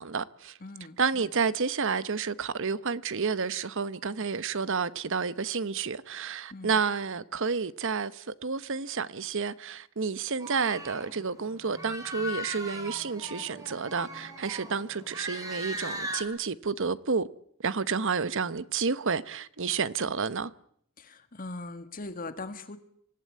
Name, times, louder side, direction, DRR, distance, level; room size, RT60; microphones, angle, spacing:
voice 1, 0.0-0.6 1.0-17.3 17.6-20.5, right 5 dB, 60° right, 0.9 m, -30 dB
voice 2, 0.6-1.0 6.5-6.8 21.0-22.8, left 2 dB, 40° left, 1.8 m, -40 dB
sound 1, 10.4-16.2, equal, 15° right, 4.7 m, -39 dB
25.0 x 16.0 x 9.6 m
head